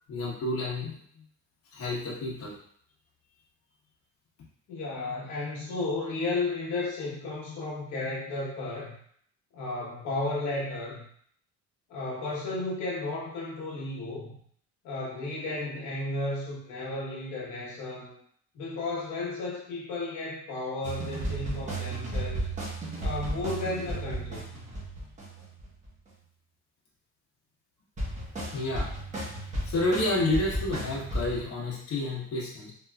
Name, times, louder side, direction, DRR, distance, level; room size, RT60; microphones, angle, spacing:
voice 1, 0.1-0.9 1.7-2.5 28.5-28.9 29.6-32.7, left 2 dB, 50° left, -6 dB, 1.1 m, -29 dB
voice 2, 4.7-8.9 9.5-11.0 11.9-14.3 14.8-18.1 18.5-22.5 23.0-24.6, left 2 dB, 75° left, -5 dB, 1.2 m, -33 dB
sound 1, 20.8-25.9 28.0-31.4, right 1 dB, 25° right, 1.1 m, -34 dB
3.6 x 2.9 x 2.3 m, 0.64 s
cardioid pair, 140°, 29 cm